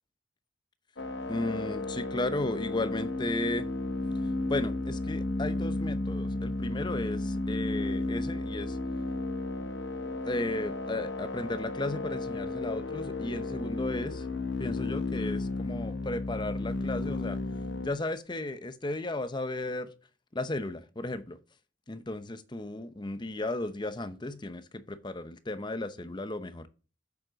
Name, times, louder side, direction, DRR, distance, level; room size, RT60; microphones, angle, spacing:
sound 1, 1.0-17.9, left 2 dB, 75° left, 1.0 m, -33 dB
voice 1, 1.3-3.7 4.5-8.8 10.2-14.3 14.6-17.4 17.8-19.9 20.3-21.4 21.9-26.7, left 2 dB, 25° left, 0.7 m, -34 dB
7.8 x 7.1 x 4.0 m
head